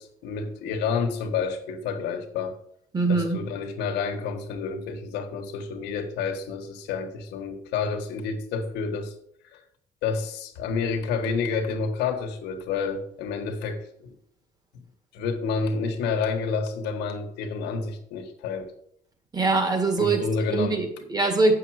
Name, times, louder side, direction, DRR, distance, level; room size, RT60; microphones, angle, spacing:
voice 1, 0.0-2.5 3.1-9.1 9.5-9.6 10.0-14.1 15.1-18.7 20.0-20.8, left 5 dB, 90° left, 5 dB, 1.4 m, -29 dB
voice 2, 2.9-3.4 19.3-20.2 20.5-21.5, right 3 dB, 25° right, 5 dB, 1.9 m, -22 dB
8.4 x 6.8 x 4.8 m, 0.69 s
cardioid pair, 110°, 17 cm